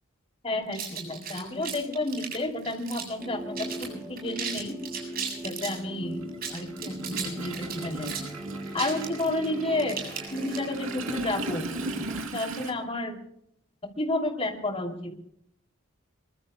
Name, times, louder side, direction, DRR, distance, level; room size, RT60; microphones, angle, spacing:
voice 1, 0.4-4.8 5.4-6.2 6.5-8.2 8.7-10.0 10.3-11.7 11.9-12.0 12.3-13.2 14.0-15.3, left 2 dB, 30° left, 2 dB, 2.8 m, -31 dB
sound 1, 0.7-3.2 3.5-3.9 4.2-5.8 6.3-10.9, right 7 dB, 45° right, 7.9 m, -36 dB
Toilet flush, 2.2-2.3 3.6-3.8 4.1-12.7, right 2 dB, 75° right, 2.8 m, -38 dB
sound 2, 3.2-12.2, equal, 10° right, 2.0 m, -40 dB
26.0 x 23.5 x 2.2 m, 0.72 s
head